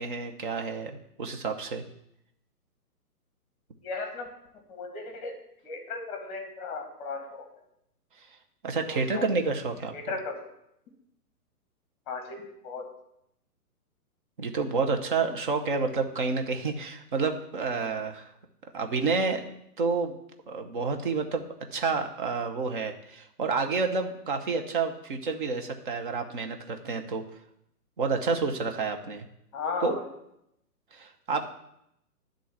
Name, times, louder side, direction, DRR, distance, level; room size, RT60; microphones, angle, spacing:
voice 1, 0.0-1.8 8.6-9.9 14.4-18.3 18.7-19.4 19.8-20.2 20.5-27.2 28.0-29.2 29.8-30.0 30.9-31.5, right 4 dB, 35° right, 5 dB, 0.8 m, -29 dB
voice 2, 3.8-4.3 4.7-5.3 5.6-7.4 8.9-9.2 9.9-10.4 12.1-12.8 29.5-30.0, left 4 dB, 20° left, 3 dB, 1.5 m, -36 dB
10.5 x 3.8 x 7.0 m, 0.79 s
hypercardioid pair, 160°, 47 cm